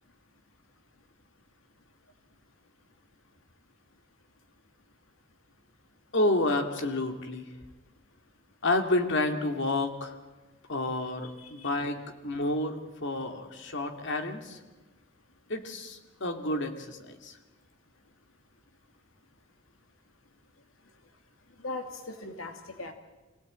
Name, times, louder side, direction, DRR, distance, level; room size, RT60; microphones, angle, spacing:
voice 1, 6.1-7.5 8.6-10.1 10.7-12.0 12.2-14.6 15.5-17.3, left 2 dB, 65° left, 5 dB, 2.5 m, -30 dB
voice 2, 11.4-11.7 21.6-22.9, left 2 dB, 80° left, 6 dB, 2.3 m, -39 dB
26.5 x 17.5 x 8.9 m, 1.2 s
head